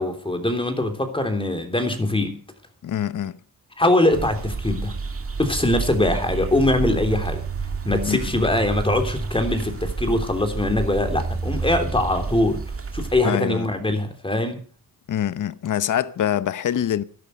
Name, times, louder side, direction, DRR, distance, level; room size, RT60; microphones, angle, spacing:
voice 1, 0.0-2.4 3.8-5.0 5.4-7.4 7.8-12.6 12.9-14.6, left 1 dB, 15° left, 3.3 m, -22 dB
voice 2, 2.8-3.4 8.0-8.2 13.2-13.7 15.1-17.0, left 10 dB, 60° left, 0.8 m, -24 dB
sound 1, 4.1-13.2, right 4 dB, 40° right, 2.3 m, -29 dB
12.5 x 11.5 x 6.6 m
cardioid pair, 85°, 35 cm